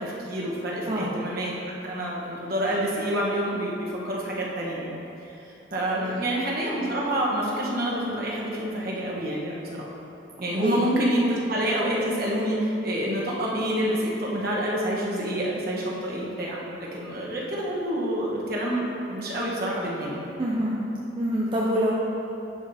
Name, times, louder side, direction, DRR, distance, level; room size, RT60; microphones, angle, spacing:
voice 1, 0.0-4.9 5.3-9.9 10.4-20.2, equal, 50° right, -4 dB, 1.1 m, -28 dB
voice 2, 5.9-6.3 10.6-10.8 20.4-20.8 21.2-21.9, equal, 25° right, -5 dB, 0.5 m, -26 dB
10.5 x 5.0 x 2.7 m, 3.0 s
head